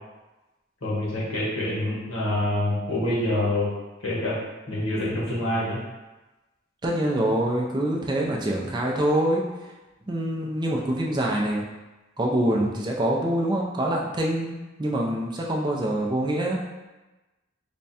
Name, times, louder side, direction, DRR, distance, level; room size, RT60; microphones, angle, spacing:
voice 1, 0.8-3.7 4.0-4.4 4.7-5.8, left 1 dB, 85° left, -6 dB, 1.3 m, -26 dB
voice 2, 6.8-9.4 10.1-11.6 12.2-16.6, right 1 dB, 20° right, -1 dB, 0.4 m, -25 dB
3.5 x 2.2 x 4.1 m, 1.1 s
head